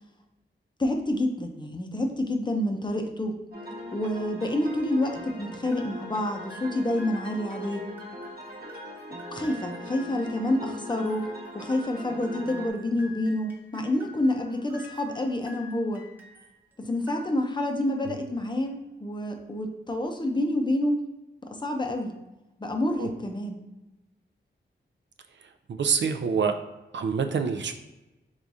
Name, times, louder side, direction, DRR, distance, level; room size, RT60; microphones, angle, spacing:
voice 1, 0.8-3.4 3.9-7.9 9.3-16.0 16.8-21.0 21.4-22.1 22.6-23.6, left 1 dB, 25° left, 3 dB, 0.6 m, -28 dB
sound 1, 3.5-12.7, equal, 50° right, 1.0 m, -40 dB
sound 2, 5.7-16.6 16.9-17.8, equal, 10° right, 0.8 m, -49 dB
voice 2, 25.7-26.5 26.9-27.7, right 6 dB, 70° right, 7 dB, 0.4 m, -26 dB
4.7 x 3.5 x 2.7 m, 1.0 s
wide cardioid pair, 105°, 19 cm